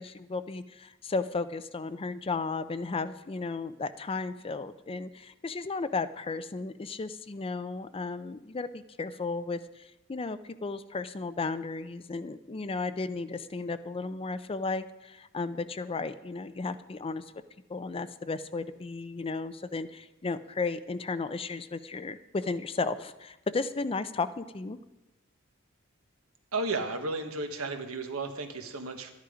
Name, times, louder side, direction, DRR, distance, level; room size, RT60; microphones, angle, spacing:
voice 1, 0.0-17.2 17.7-24.8, left 3 dB, 25° left, 13 dB, 0.5 m, -34 dB
voice 2, 26.5-29.1, right 3 dB, 75° right, 6 dB, 1.4 m, -33 dB
12.5 x 10.5 x 5.0 m, 0.97 s
head